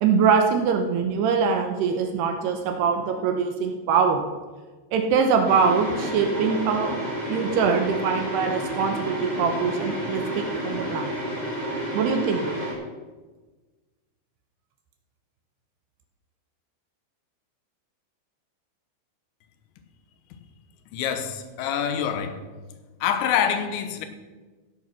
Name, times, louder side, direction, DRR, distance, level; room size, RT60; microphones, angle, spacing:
voice 1, 0.0-4.2 4.9-6.9 7.3-11.1 11.9-12.5, right 6 dB, 75° right, 2.7 m, -23 dB
sound 1, 5.4-12.7, equal, 10° right, 3.5 m, -30 dB
voice 2, 20.9-22.4 23.0-24.1, left 8 dB, 75° left, 3.3 m, -26 dB
15.5 x 8.1 x 6.0 m
omnidirectional pair, 5.5 m